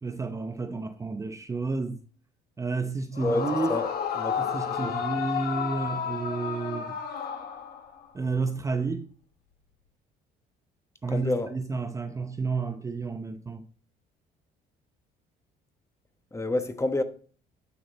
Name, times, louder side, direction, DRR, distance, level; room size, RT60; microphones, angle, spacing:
voice 1, 0.0-2.0 2.6-3.8 4.4-7.0 8.1-9.1 11.0-13.7, right 4 dB, 20° right, 0.6 m, -31 dB
Yell / Screaming, 3.1-8.1, left 7 dB, 65° left, 1.5 m, -32 dB
voice 2, 11.1-11.5 16.3-17.0, left 2 dB, 15° left, 1.1 m, -28 dB
9.8 x 6.2 x 4.1 m
cardioid pair, 110°, 17 cm